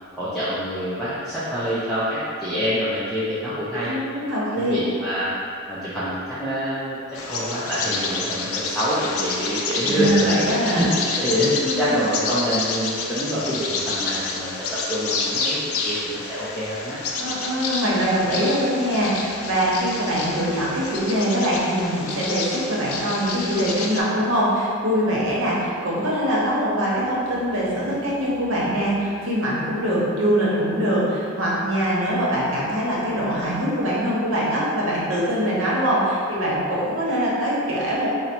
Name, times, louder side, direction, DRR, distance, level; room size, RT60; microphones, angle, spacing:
voice 1, 0.1-3.9 4.3-5.3 5.7-10.4 10.8-10.9 11.2-17.0, equal, ahead, -13 dB, 0.5 m, -26 dB
voice 2, 3.9-4.7 9.9-11.2 11.6-12.0 17.2-38.1, equal, 60° right, -6 dB, 0.9 m, -23 dB
Bird vocalization bird call bird song, 7.1-24.0, left 4 dB, 80° left, 0.4 m, -29 dB
3.9 x 2.0 x 4.3 m, 2.5 s
head